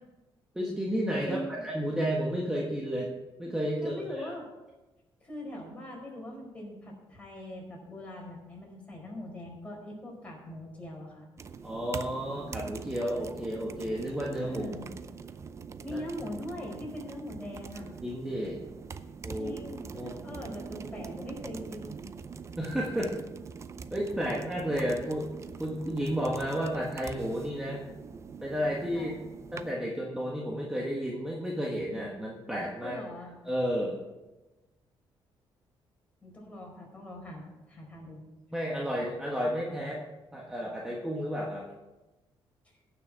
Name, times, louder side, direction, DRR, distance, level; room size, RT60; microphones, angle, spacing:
voice 1, 0.5-3.1 3.4-4.3 11.6-14.6 15.9-16.0 18.0-18.6 19.2-19.6 19.9-20.1 22.6-23.2 23.9-27.8 28.4-29.1 29.5-33.0 33.4-34.0 38.5-40.0 40.3-41.7, equal, 5° right, -2 dB, 1.5 m, -32 dB
voice 2, 1.2-1.6 3.8-4.5 5.2-11.2 14.5-14.9 15.8-17.9 19.4-22.0 28.9-29.1 32.8-33.3 36.2-38.2, left 1 dB, 15° left, -2 dB, 4.6 m, -41 dB
sound 1, 11.4-29.7, right 5 dB, 30° right, 0.5 m, -43 dB
17.0 x 6.5 x 4.7 m, 1.1 s
cardioid pair, 125°, 9 cm